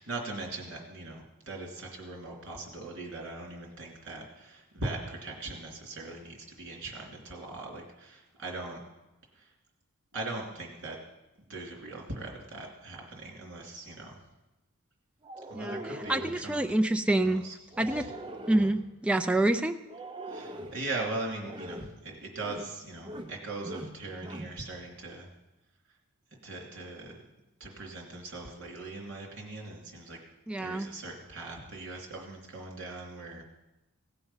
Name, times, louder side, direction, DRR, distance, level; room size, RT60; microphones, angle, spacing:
voice 1, 0.0-8.8 9.3-9.5 10.1-11.0 11.4-14.2 15.5-16.8 17.2-17.5 17.8-18.1 20.3-25.3 26.3-27.2 27.6-30.2 30.6-33.4, right 2 dB, 50° right, -1 dB, 3.0 m, -40 dB
sound 1, 15.2-16.5 17.7-18.9 19.9-20.8 21.4-21.9 22.4-22.7 23.0-23.4 23.6-24.6, right 1 dB, 20° right, 0.8 m, -41 dB
voice 2, 16.1-17.4 17.8-18.0 18.5-19.7 30.5-30.9, right 1 dB, 5° right, 7 dB, 0.4 m, -26 dB
17.0 x 6.9 x 5.6 m, 0.98 s
head